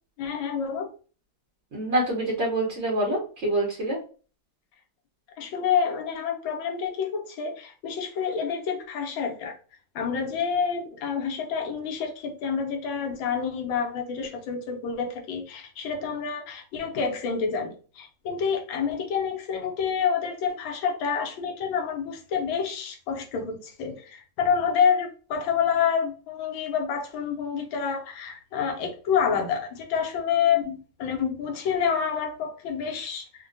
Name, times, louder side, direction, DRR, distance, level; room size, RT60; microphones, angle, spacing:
voice 1, 0.2-0.9 5.4-9.6 9.9-33.5, left 6 dB, 75° left, 1.3 m, -28 dB
voice 2, 1.7-4.0, right 1 dB, 55° right, 0.7 m, -26 dB
3.6 x 2.1 x 2.5 m
omnidirectional pair, 2.3 m